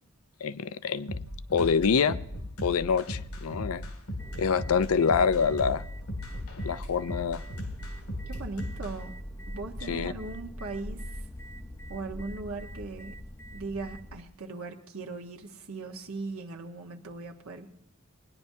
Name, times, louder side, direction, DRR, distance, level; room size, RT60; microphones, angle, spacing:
voice 1, 0.4-1.2 1.5-2.2 2.6-3.8 4.4-5.8 6.6-7.4 9.9-10.1, left 6 dB, 70° left, 16 dB, 0.5 m, -26 dB
sound 1, 1.1-8.9, left 1 dB, 90° left, 2.5 m, -37 dB
sound 2, 4.2-14.2, equal, 10° left, 0.6 m, -43 dB
voice 2, 8.3-9.2 9.5-11.2 11.9-13.1 13.5-17.7, right 3 dB, 65° right, 1 dB, 1.2 m, -39 dB
19.0 x 10.5 x 2.7 m, 0.81 s
head